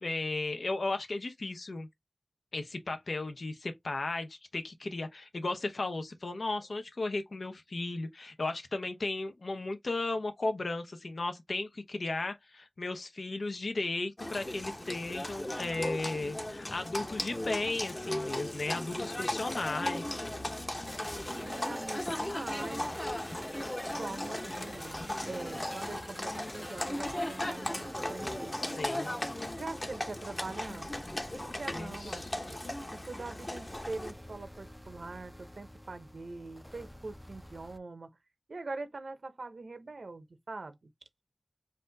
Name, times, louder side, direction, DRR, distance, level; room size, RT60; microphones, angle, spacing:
voice 1, 0.0-1.9 2.5-20.2 28.7-29.1 31.7-32.3, left 2 dB, 80° left, 0.8 m, -35 dB
Livestock farm animals working animals, 14.2-34.1, left 1 dB, 30° left, 0.9 m, -37 dB
sound 1, 20.9-37.8, equal, 5° left, 0.4 m, -46 dB
voice 2, 21.2-22.8 23.9-28.8 29.6-30.9 31.4-32.4 32.9-38.1 38.5-40.9, right 3 dB, 80° right, 0.8 m, -43 dB
4.2 x 2.6 x 3.9 m
wide cardioid pair, 70°, 0 cm